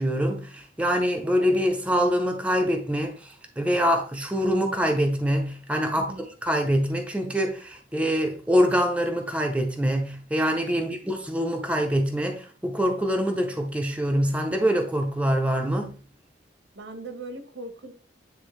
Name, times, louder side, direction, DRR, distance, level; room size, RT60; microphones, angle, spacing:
voice 1, 0.0-16.0, equal, 5° right, 0.6 m, -25 dB
voice 2, 6.0-6.3 16.7-17.9, right 2 dB, 85° right, 1.1 m, -39 dB
9.2 x 3.5 x 3.2 m
head